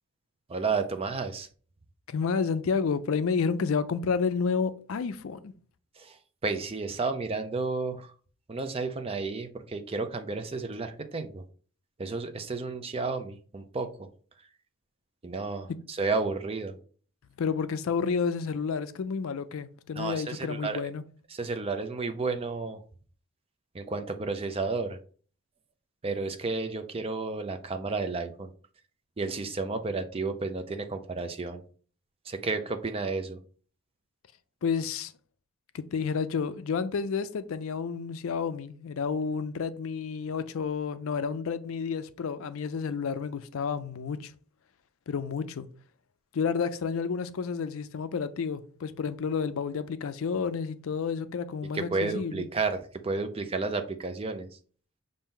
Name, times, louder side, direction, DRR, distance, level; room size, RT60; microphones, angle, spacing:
voice 1, 0.5-1.5 6.0-8.1 8.5-11.4 12.0-14.1 15.2-16.8 19.9-20.9 21.3-22.8 23.7-25.0 26.0-28.5 29.2-31.6 32.3-33.4 51.7-54.5, right 4 dB, 25° right, 0.4 m, -32 dB
voice 2, 2.1-5.5 17.4-21.0 34.6-35.1 35.7-44.3 45.1-45.7 46.3-52.5, left 5 dB, 65° left, 0.4 m, -30 dB
5.5 x 2.6 x 3.6 m
head